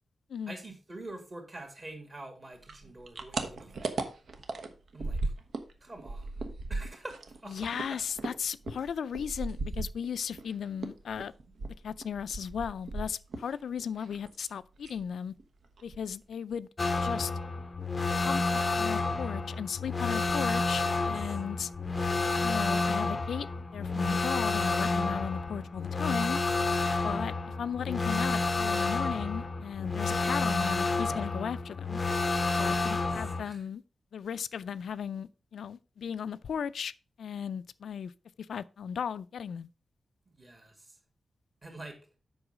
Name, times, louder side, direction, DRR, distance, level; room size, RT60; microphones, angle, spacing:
voice 1, 0.5-3.9 4.9-5.3 5.8-6.4 6.7-8.0 20.7-21.1 32.8-33.1 33.4-33.6 40.3-41.0 41.6-42.0, right 2 dB, 30° right, 2.2 m, -46 dB
sound 1, 2.6-5.7 6.0-10.5 10.8-13.6 13.8-14.5 14.8-15.1 15.4-15.5 15.8-16.3, right 3 dB, 60° right, 1.1 m, -37 dB
voice 2, 7.5-11.3 11.8-15.3 15.8-16.7 17.0-17.3 18.2-21.7 22.4-23.5 23.7-26.4 27.0-32.0 32.5-33.8 34.1-36.9 37.2-38.1 38.5-39.7, left 7 dB, 85° left, 0.4 m, -36 dB
sound 2, 16.8-33.4, left 3 dB, 25° left, 0.6 m, -30 dB
7.9 x 5.4 x 4.9 m
wide cardioid pair, 175°, 0 cm